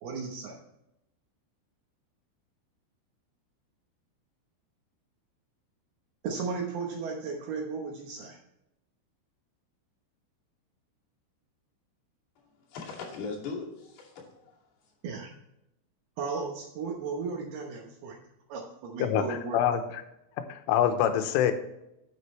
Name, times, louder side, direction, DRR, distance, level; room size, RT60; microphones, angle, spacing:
voice 1, 0.0-0.6 6.2-8.4 15.0-15.3 16.2-18.2 18.5-19.6, right 4 dB, 70° right, 2.6 m, -35 dB
voice 2, 12.4-14.6, left 4 dB, 60° left, 4.3 m, -40 dB
voice 3, 19.0-20.0 20.5-21.5, left 10 dB, 90° left, 3.4 m, -25 dB
9.8 x 8.5 x 3.2 m
omnidirectional pair, 5.6 m